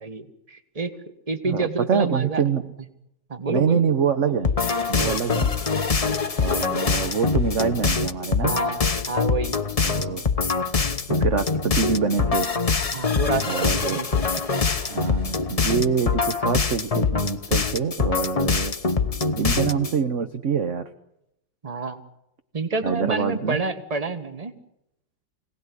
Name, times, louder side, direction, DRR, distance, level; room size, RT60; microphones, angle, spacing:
voice 1, 0.0-0.9 1.3-2.4 3.3-3.8 5.0-5.2 8.4-9.6 12.9-14.1 21.6-22.0 22.5-24.5, right 3 dB, 20° right, 9 dB, 1.5 m, -28 dB
voice 2, 1.4-2.6 3.5-4.5 4.9-5.5 6.4-8.5 9.8-10.3 11.1-12.5 13.4-14.0 14.9-18.7 19.4-20.8 22.8-23.6, right 6 dB, 45° right, 8 dB, 1.2 m, -25 dB
sound 1, 4.4-20.0, left 4 dB, 40° left, 0.5 m, -24 dB
25.5 x 18.0 x 10.0 m, 0.83 s
omnidirectional pair, 2.2 m